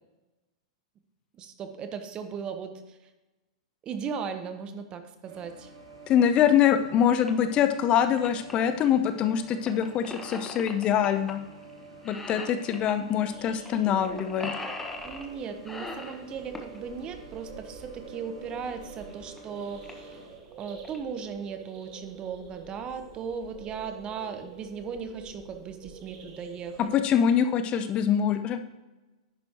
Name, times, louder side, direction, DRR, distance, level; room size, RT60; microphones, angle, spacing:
voice 1, 1.3-3.0 3.8-5.7 13.7-14.2 15.0-20.2 20.6-26.9, right 6 dB, 30° right, 8 dB, 1.1 m, -37 dB
sound 1, 5.2-20.4, right 2 dB, 80° right, 3.7 m, -49 dB
voice 2, 6.1-11.4 12.0-14.5 26.9-28.6, left 9 dB, 35° left, 9 dB, 0.7 m, -24 dB
sound 2, 7.2-7.3 7.7-8.5 9.7-11.3 11.6-11.8 12.0-12.9 13.7-13.8 14.0-15.3 15.6-16.8 18.4-18.5 19.1-19.2 19.4-19.5 19.8-20.1 20.6-21.0, left 2 dB, 10° left, 1.3 m, -39 dB
sound 3, 13.3-27.0, right 5 dB, 45° right, 2.1 m, -48 dB
10.5 x 9.5 x 3.0 m, 1.1 s
hypercardioid pair, 110°, 3 cm